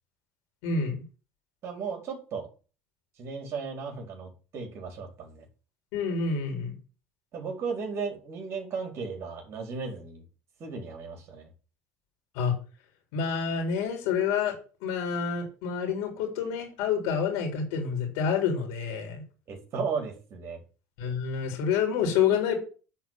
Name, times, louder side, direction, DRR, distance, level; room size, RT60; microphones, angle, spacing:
voice 1, 0.6-0.9 5.9-6.8 12.3-12.5 13.1-14.5 14.8-19.2 21.0-22.5, left 6 dB, 80° left, 3 dB, 4.1 m, -28 dB
voice 2, 1.6-2.5 3.2-5.4 7.3-10.2 10.6-11.5 19.5-20.6, right 5 dB, 50° right, 2 dB, 4.3 m, -35 dB
9.2 x 4.4 x 7.4 m, 0.35 s
supercardioid pair, 90°, 6 cm